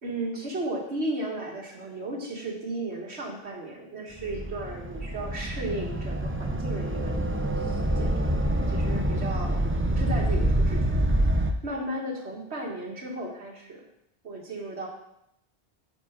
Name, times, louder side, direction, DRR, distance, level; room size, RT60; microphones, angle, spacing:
voice 1, 0.0-7.2 7.6-9.6 9.9-13.8 14.2-14.9, right 1 dB, 85° right, 0 dB, 2.0 m, -35 dB
sound 1, 4.2-11.5, right 1 dB, 20° right, 0.4 m, -26 dB
9.2 x 4.7 x 5.9 m, 0.79 s
omnidirectional pair, 1.1 m